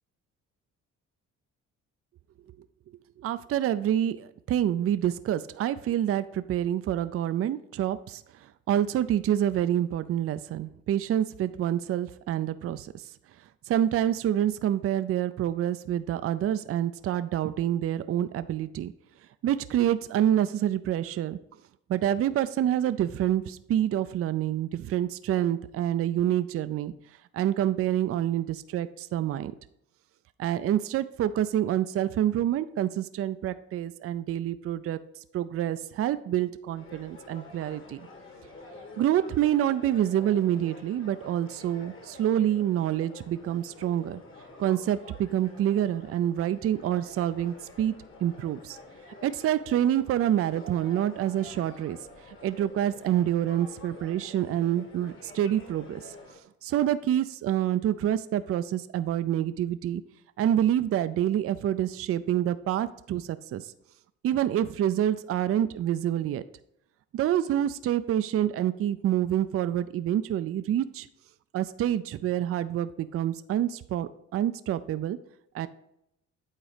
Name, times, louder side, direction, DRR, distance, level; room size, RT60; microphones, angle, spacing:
voice 1, 3.2-13.0 13.7-18.9 19.4-21.4 21.9-26.9 27.3-29.5 30.4-35.0 35.3-38.1 39.0-44.2 44.6-47.9 48.2-48.8 49.2-52.0 52.3-56.1 56.6-60.0 60.4-63.7 64.2-66.4 67.1-71.1 71.5-75.2 75.5-75.7, right 11 dB, 50° right, 13 dB, 0.4 m, -27 dB
sound 1, 36.7-56.4, left 2 dB, 40° left, 1.6 m, -49 dB
8.8 x 4.1 x 5.0 m, 0.77 s
cardioid pair, 90°, 30 cm